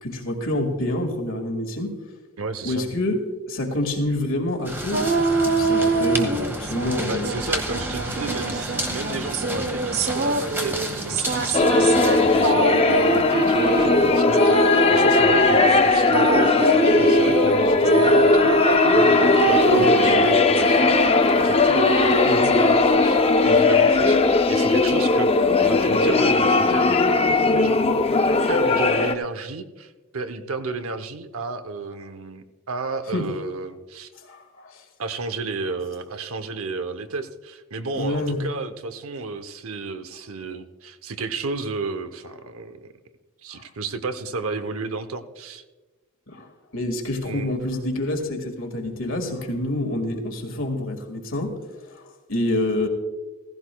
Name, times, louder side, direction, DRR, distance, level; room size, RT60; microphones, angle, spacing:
voice 1, 0.0-1.9 2.6-3.2 3.5-7.3 19.7-20.0 33.1-33.3 34.3-34.8 38.0-38.5 46.3-46.5 46.7-51.5 52.0-52.1 52.3-52.9, left 1 dB, 65° left, 3 dB, 1.9 m, -27 dB
voice 2, 2.4-2.9 7.0-27.8 28.5-34.1 35.0-42.9 43.4-45.6 47.2-47.5, right 3 dB, 75° right, 9 dB, 0.8 m, -32 dB
sound 1, 4.6-12.5, right 1 dB, 10° right, 1.2 m, -31 dB
sound 2, 4.9-7.0 7.2-23.0, right 3 dB, 50° right, 0.9 m, -24 dB
sound 3, 11.5-29.1, left 3 dB, 25° left, 0.5 m, -18 dB
16.0 x 15.5 x 2.3 m, 1.2 s
head